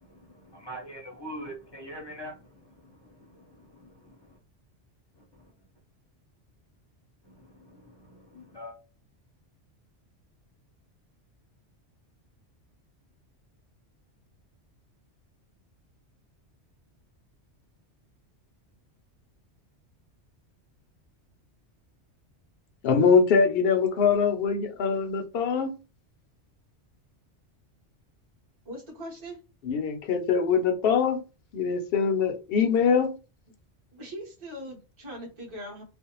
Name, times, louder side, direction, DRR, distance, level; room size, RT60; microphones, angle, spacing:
voice 1, 0.0-4.4 7.3-8.8, equal, 30° left, 0.6 m, -44 dB
voice 2, 22.8-25.8 29.6-31.2 31.5-33.2, left 6 dB, 65° left, 0.7 m, -23 dB
voice 3, 28.6-29.4 33.9-35.8, equal, 25° right, 0.9 m, -40 dB
2.5 x 2.0 x 2.9 m
omnidirectional pair, 1.2 m